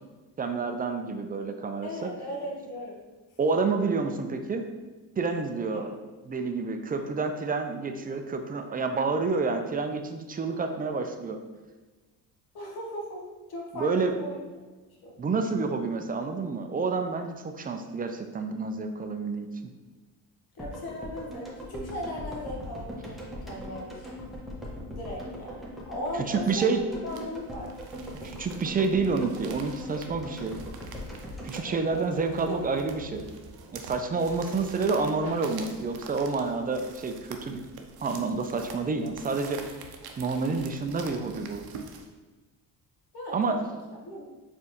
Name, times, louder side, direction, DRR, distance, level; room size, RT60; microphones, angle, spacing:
voice 1, 0.4-2.1 3.4-4.7 5.2-5.9 6.3-11.4 13.7-14.1 15.2-19.5 26.3-26.8 28.2-30.6 31.4-33.3 33.7-37.6 38.0-39.6 40.2-41.7 43.3-43.6, right 4 dB, 20° right, 6 dB, 0.4 m, -29 dB
voice 2, 1.8-3.0 5.7-5.8 12.5-13.2 13.5-14.4 15.0-15.2 20.5-24.2 24.9-27.7 31.6-32.1 32.5-32.7 43.1-44.3, equal, 55° left, -2 dB, 1.3 m, -38 dB
sound 1, 20.6-32.8 33.1-33.2, equal, ahead, 1.2 m, -40 dB
sound 2, 27.1-42.1, right 5 dB, 55° right, 0.7 m, -46 dB
4.3 x 3.4 x 3.0 m, 1.3 s
supercardioid pair, 60°, 45 cm